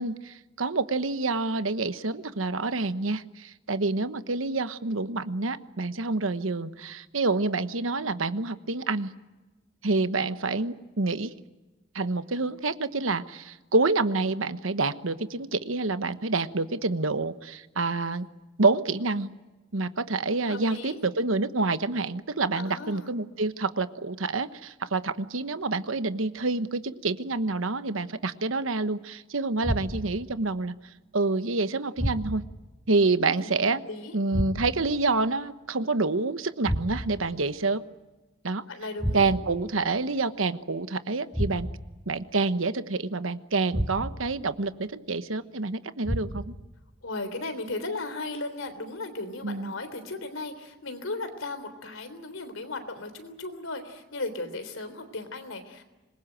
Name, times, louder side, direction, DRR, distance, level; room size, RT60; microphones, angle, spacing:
voice 1, 0.0-9.1 9.8-11.3 11.9-18.3 18.6-19.3 19.7-30.7 31.1-32.4 32.9-33.8 34.1-37.8 38.4-38.6 39.1-41.7 42.1-46.5 49.4-49.7, right 3 dB, 85° right, 12 dB, 1.2 m, -27 dB
voice 2, 20.5-21.0 22.5-23.1 33.2-33.6 33.9-34.2 38.7-39.3 47.0-55.8, left 2 dB, 90° left, 9 dB, 3.6 m, -36 dB
sound 1, 29.6-30.3 32.0-32.6 34.3-35.0 36.6-37.3 39.0-39.6 41.3-42.0 43.7-44.4 46.0-46.7, equal, 5° right, 4.2 m, -31 dB
26.0 x 21.5 x 9.1 m, 1.1 s
head